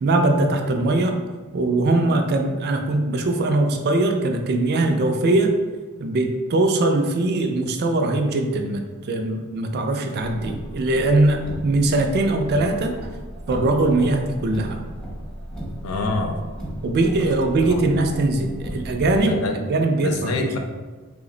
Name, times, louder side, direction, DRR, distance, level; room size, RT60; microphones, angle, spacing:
voice 1, 0.0-1.2 1.5-5.5 6.0-13.0 13.5-14.8 16.8-19.4 19.7-20.5, right 2 dB, 50° right, 5 dB, 0.3 m, -21 dB
Car, 10.3-19.2, right 1 dB, 5° left, 0.8 m, -35 dB
voice 2, 15.8-16.4 17.2-17.3 17.7-18.1 19.2-19.6 20.0-20.6, left 3 dB, 70° left, 4 dB, 0.4 m, -27 dB
3.3 x 2.0 x 3.7 m, 1.3 s
head